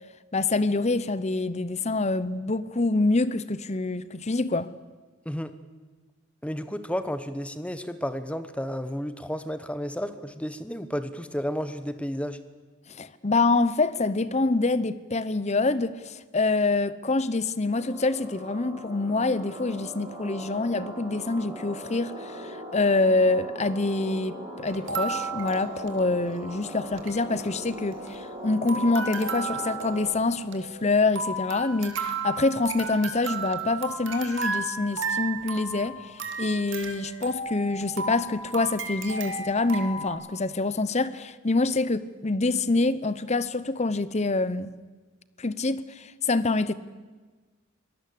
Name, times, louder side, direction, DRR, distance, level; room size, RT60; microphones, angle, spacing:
voice 1, 0.3-4.7 12.9-44.7 45.4-46.7, left 3 dB, 30° left, 0.8 m, -26 dB
voice 2, 6.4-12.4, equal, 5° left, 1.2 m, -32 dB
sound 1, 17.7-30.0, equal, 20° right, 7.8 m, -40 dB
sound 2, 24.7-26.4 26.6-26.7 26.9-27.2 27.6-28.4 28.7-40.1, right 4 dB, 60° right, 2.8 m, -34 dB
24.0 x 19.0 x 8.6 m
head